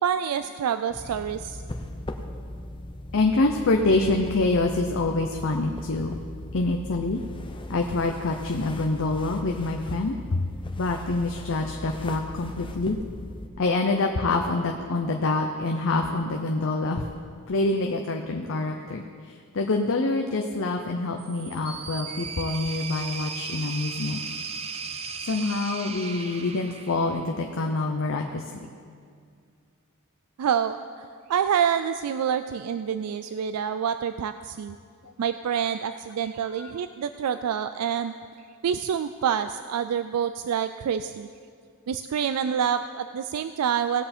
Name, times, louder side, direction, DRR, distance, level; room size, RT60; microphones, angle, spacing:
voice 1, 0.0-1.6 30.4-34.8 35.2-38.1 38.6-41.3 41.9-44.0, right 8 dB, 90° right, 11 dB, 0.3 m, -27 dB
sound 1, 0.9-13.5, left 1 dB, 25° left, 0.7 m, -39 dB
voice 2, 3.1-6.2 6.5-7.2 7.7-10.4 10.8-13.0 13.6-17.0 17.5-19.0 19.5-24.2 25.3-28.4 35.0-35.1 36.6-36.7, left 2 dB, 60° left, 3 dB, 0.7 m, -26 dB
sound 2, 21.2-27.4, right 5 dB, 25° right, 0.6 m, -36 dB
17.5 x 7.8 x 4.3 m, 2.2 s
head